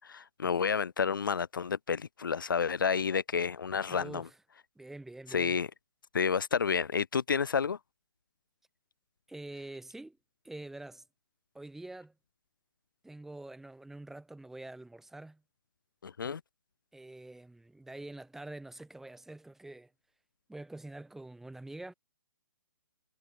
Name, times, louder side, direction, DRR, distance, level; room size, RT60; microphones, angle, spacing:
voice 1, 0.0-4.3 5.3-5.7 6.1-7.8 16.0-16.4, left 6 dB, 75° left, 0.5 m, -30 dB
voice 2, 3.9-4.4 4.8-5.6 9.3-10.2 10.4-11.0 11.5-12.1 13.0-15.4 16.9-19.9 20.5-21.9, right 2 dB, 5° right, 2.5 m, -46 dB
figure-of-eight pair, 130°, 11 cm